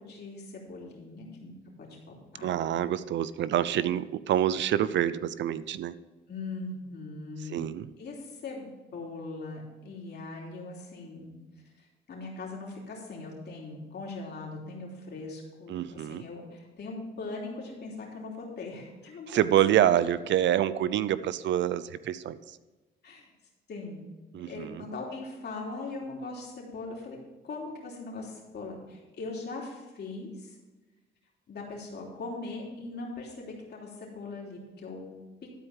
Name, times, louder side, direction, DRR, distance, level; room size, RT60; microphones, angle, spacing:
voice 1, 0.0-2.6 6.3-7.6 8.0-11.4 12.1-19.4 19.9-20.0 23.0-23.3 23.7-24.0 24.5-27.2 27.4-30.5 31.5-35.2, left 3 dB, 55° left, -2 dB, 3.2 m, -40 dB
voice 2, 2.4-6.0 7.4-7.9 15.7-16.2 19.3-22.4 24.3-24.8, right 11 dB, 65° right, 16 dB, 0.5 m, -27 dB
12.5 x 4.6 x 7.0 m, 1.2 s
cardioid pair, 90°, 20 cm